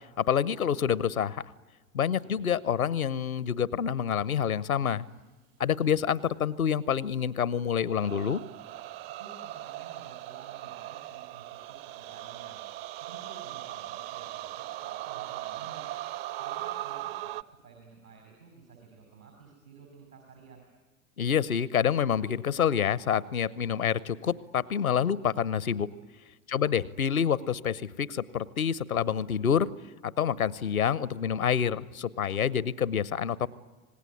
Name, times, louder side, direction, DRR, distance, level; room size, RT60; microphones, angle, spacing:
voice 1, 0.2-1.4 1.9-5.1 5.6-8.4 21.2-25.9 26.5-29.7 30.0-33.5, left 8 dB, 80° left, 21 dB, 0.9 m, -27 dB
sound 1, 7.9-17.4, right 15 dB, 45° right, 0.7 m, -39 dB
voice 2, 9.2-12.6 13.0-15.9 16.4-20.7 26.5-26.8, right 5 dB, 85° right, 3 dB, 6.0 m, -52 dB
26.0 x 19.5 x 9.6 m, 1.3 s
figure-of-eight pair, 85°, 42 cm